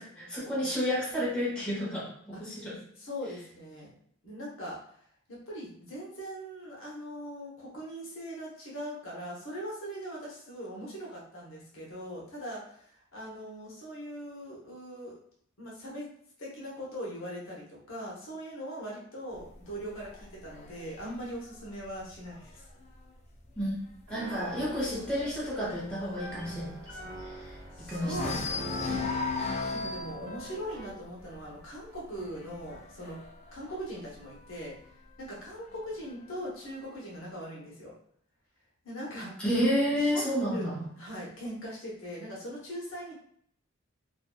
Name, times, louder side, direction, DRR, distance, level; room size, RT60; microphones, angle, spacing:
voice 1, 0.0-2.8 23.6-23.7 24.1-26.7 27.9-28.4 39.4-40.8, equal, 5° left, -8 dB, 0.9 m, -30 dB
voice 2, 3.0-3.9 4.2-4.8 5.3-15.1 15.6-16.1 16.4-22.7 27.7-29.2 29.7-33.2 33.5-34.8 35.2-37.9 38.8-39.3 40.0-40.2 40.5-40.7 41.0-43.1, equal, 75° left, -4 dB, 0.9 m, -41 dB
sound 1, 19.4-23.0 23.4-23.7 24.0-24.1 24.5-27.7 28.1-34.6 35.5-36.5, left 4 dB, 30° left, 0.4 m, -38 dB
Piano, 24.1-31.0, right 1 dB, 55° right, 1.0 m, -44 dB
2.6 x 2.4 x 2.2 m, 0.63 s
head